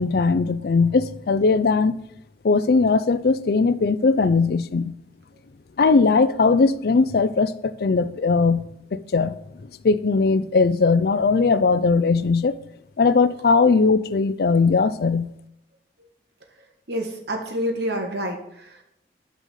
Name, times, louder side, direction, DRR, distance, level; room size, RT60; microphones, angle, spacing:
voice 1, 0.0-2.0 2.4-4.9 5.8-8.6 8.9-9.4 9.8-12.6 13.0-15.3, left 4 dB, 60° left, 0.4 m, -19 dB
voice 2, 16.9-18.8, equal, 70° right, 1.6 m, -28 dB
6.4 x 5.4 x 6.4 m
head